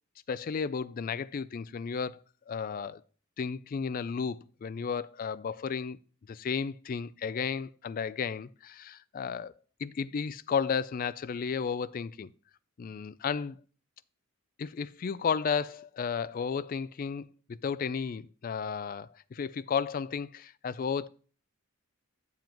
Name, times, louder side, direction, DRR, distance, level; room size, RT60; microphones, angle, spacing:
voice 1, 0.3-2.2 2.5-3.0 3.4-6.0 6.3-9.5 9.8-12.3 12.8-13.6 14.6-21.1, left 6 dB, 40° left, 0.3 m, -33 dB
9.1 x 7.2 x 2.9 m
head